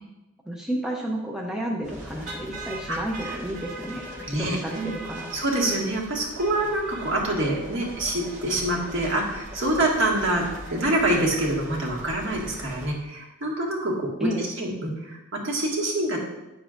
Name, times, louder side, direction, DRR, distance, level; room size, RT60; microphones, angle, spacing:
voice 1, 0.5-5.3 14.2-14.5, right 1 dB, 5° right, -2 dB, 0.6 m, -31 dB
sound 1, 1.8-12.9, right 1 dB, 35° right, 1.5 m, -40 dB
voice 2, 2.9-3.4 4.3-4.9 5.3-16.2, right 1 dB, 55° right, -3 dB, 1.8 m, -26 dB
9.9 x 7.1 x 2.5 m, 0.98 s
head